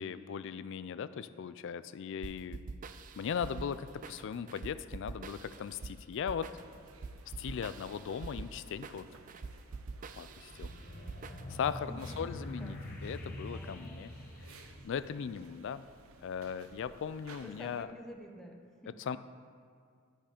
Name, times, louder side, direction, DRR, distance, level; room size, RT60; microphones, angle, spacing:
voice 1, 0.0-2.6 3.2-6.5 7.4-9.1 10.1-10.7 11.5-14.1 14.5-15.9 16.2-17.9 19.0-19.2, left 7 dB, 60° left, 14 dB, 0.3 m, -38 dB
sound 1, 2.2-11.8, right 4 dB, 40° right, 0.3 m, -46 dB
sound 2, 6.6-17.8, right 4 dB, 75° right, 0.6 m, -58 dB
sound 3, 10.5-15.5, left 1 dB, 40° left, 1.0 m, -44 dB
voice 2, 11.9-12.7 13.5-14.1 15.3-15.4 17.4-18.9, equal, ahead, 1 dB, 0.8 m, -50 dB
11.0 x 5.4 x 5.0 m, 2.2 s
head